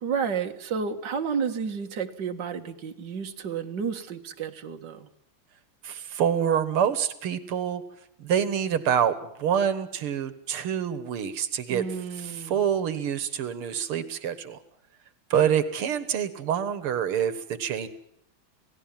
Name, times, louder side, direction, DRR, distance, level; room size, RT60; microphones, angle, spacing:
voice 1, 0.0-5.1 11.7-12.7, right 6 dB, 55° right, 5 dB, 2.3 m, -31 dB
voice 2, 5.8-7.8 8.2-11.8 12.2-14.6 15.3-17.9, right 8 dB, 85° right, 14 dB, 2.3 m, -26 dB
28.0 x 18.0 x 7.4 m, 0.74 s
omnidirectional pair, 2.4 m